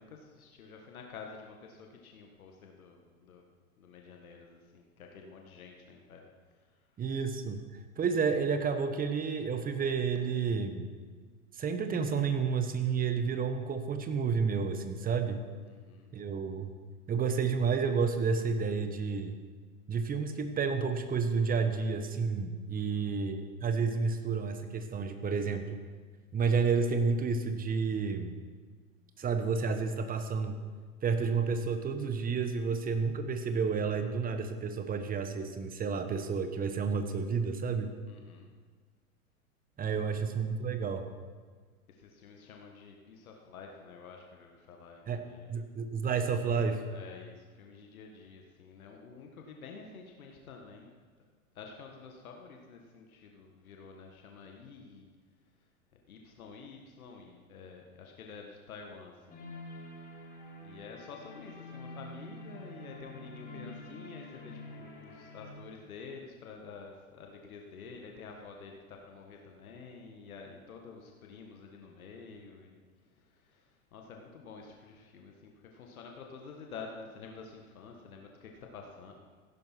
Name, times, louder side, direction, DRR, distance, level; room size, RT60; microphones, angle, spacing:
voice 1, 0.0-3.4 3.8-6.3 6.5-6.8 15.6-16.1 22.7-23.2 38.1-38.5 39.8-40.1 41.9-45.6 46.4-50.9 51.6-55.1 55.9-59.4 60.6-72.8 73.1-79.2, left 5 dB, 70° left, 2 dB, 1.8 m, -49 dB
voice 2, 7.0-7.6 8.0-10.9 11.5-15.4 16.1-16.7 17.1-19.4 19.9-25.7 26.3-28.4 29.2-30.6 31.0-37.9 39.8-41.0 45.1-45.2 45.5-46.8, right 5 dB, 20° right, 8 dB, 1.2 m, -30 dB
sound 1, 59.3-65.5, left 1 dB, 20° left, 4.7 m, -47 dB
16.0 x 11.0 x 4.6 m, 1.5 s
hypercardioid pair, 105°, 44 cm